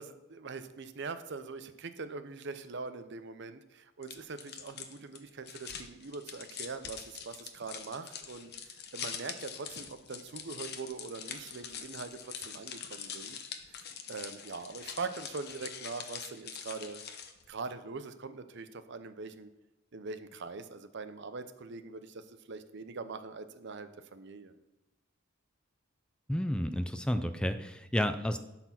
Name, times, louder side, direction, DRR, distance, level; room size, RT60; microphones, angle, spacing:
voice 1, 0.0-13.4 13.7-13.8 14.1-17.0 17.5-19.5 19.9-24.6, right 4 dB, 60° right, 11 dB, 0.7 m, -42 dB
sound 1, 4.0-17.5, left 7 dB, 55° left, 0.9 m, -44 dB
voice 2, 26.3-28.4, equal, 5° left, 9 dB, 0.4 m, -31 dB
12.0 x 4.4 x 5.9 m, 0.98 s
head